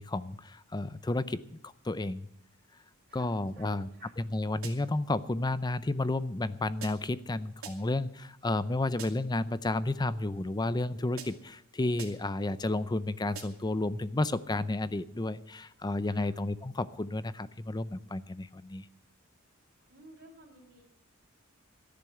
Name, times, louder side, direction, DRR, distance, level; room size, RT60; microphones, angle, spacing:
voice 1, 0.0-2.3 3.1-3.9 4.2-18.9, left 2 dB, 20° left, 15 dB, 0.5 m, -32 dB
voice 2, 3.1-4.1 16.0-16.3 19.9-20.8, right 2 dB, 50° right, -6 dB, 3.2 m, -55 dB
sound 1, 4.6-5.1 6.8-7.2 7.6-8.1 9.0-9.4 11.2-11.6 12.0-12.4 13.3-13.8, right 7 dB, 80° right, 2.5 m, -47 dB
13.5 x 11.0 x 7.8 m, 0.72 s
head